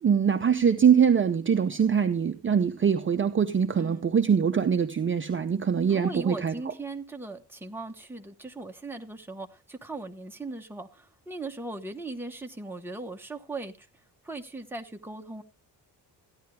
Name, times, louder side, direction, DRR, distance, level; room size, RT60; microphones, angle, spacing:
voice 1, 0.0-6.5, right 7 dB, 30° right, 0.6 m, -23 dB
voice 2, 5.9-13.9 14.2-15.4, right 2 dB, 5° right, 1.0 m, -38 dB
14.5 x 10.5 x 3.3 m
cardioid pair, 140°, 42 cm